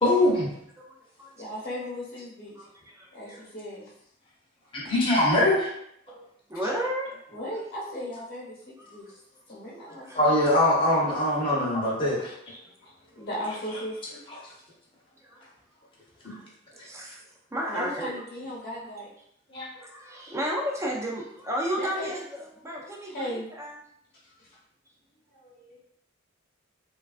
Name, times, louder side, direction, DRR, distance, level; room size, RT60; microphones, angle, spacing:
voice 1, 0.0-0.5 4.7-5.7 10.1-12.2 19.5-19.7, left 1 dB, 25° left, -5 dB, 0.8 m, -22 dB
voice 2, 1.4-2.5 3.1-3.9 7.3-9.1 9.5-10.5 11.7-11.8 12.8-14.0 14.3-14.5 17.7-19.1 21.8-22.1 22.5-23.5 25.4-25.8, equal, 50° left, -5 dB, 1.0 m, -37 dB
voice 3, 2.6-3.5 6.1-6.2 6.5-7.1 9.9-10.2 12.3-12.7 13.2-13.3 15.2-15.4 16.2-17.2 17.5-18.2 18.5-18.6 19.8-23.7, equal, 15° right, -2 dB, 0.5 m, -33 dB
3.2 x 2.3 x 2.4 m, 0.73 s
head